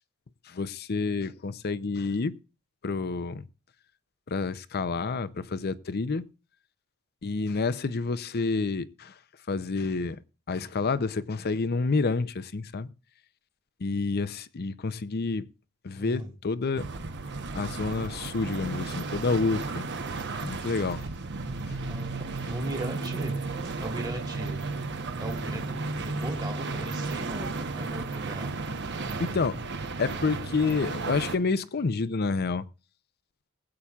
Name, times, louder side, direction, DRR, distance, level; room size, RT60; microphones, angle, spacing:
voice 1, 0.5-2.4 2.8-3.5 4.3-6.3 7.2-9.2 9.5-10.2 10.5-12.9 13.8-15.5 15.8-16.8 17.5-19.9 20.1-21.1 21.7-21.8 29.2-29.7 30.0-32.7, left 4 dB, 45° left, 0.6 m, -29 dB
voice 2, 16.0-16.3 21.9-23.4 23.8-24.6 25.2-28.5 29.0-29.3, right 1 dB, 20° right, 1.7 m, -38 dB
sound 1, 16.8-31.4, right 3 dB, 50° right, 1.0 m, -34 dB
20.5 x 8.6 x 2.4 m
head